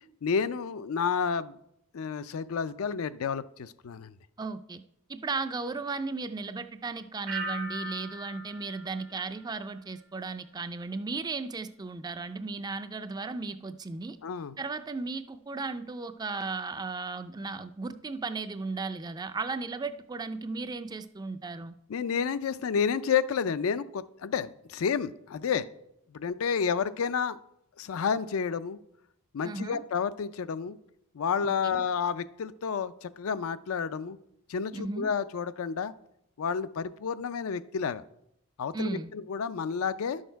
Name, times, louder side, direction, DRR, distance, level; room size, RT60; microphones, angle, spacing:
voice 1, 0.2-1.6 1.9-4.1 14.2-14.5 21.9-25.7 26.1-27.4 27.8-28.8 29.3-30.8 31.1-34.2 34.5-35.9 36.4-38.0 38.6-40.2, left 6 dB, 70° left, 15 dB, 0.4 m, -30 dB
voice 2, 4.4-4.8 5.1-14.2 14.6-21.8 29.4-29.8 31.4-31.8 34.7-35.1 38.7-39.1, right 3 dB, 20° right, 11 dB, 0.3 m, -35 dB
sound 1, 7.3-10.1 10.4-10.9, right 1 dB, 65° right, 1.2 m, -40 dB
11.0 x 6.4 x 4.5 m, 0.78 s
head